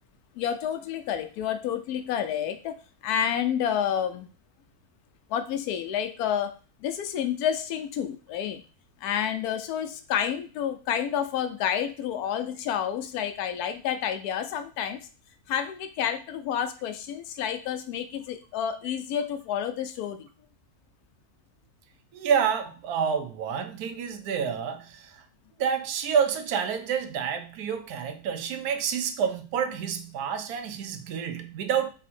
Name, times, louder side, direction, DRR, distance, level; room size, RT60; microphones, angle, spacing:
voice 1, 0.4-2.7 3.0-4.3 5.3-6.5 6.8-8.6 9.0-15.1 15.5-20.3, left 9 dB, 90° left, 1.1 m, -29 dB
voice 2, 22.1-25.2 25.6-31.9, right 7 dB, 85° right, 1.1 m, -28 dB
3.6 x 2.8 x 4.2 m
omnidirectional pair, 1.6 m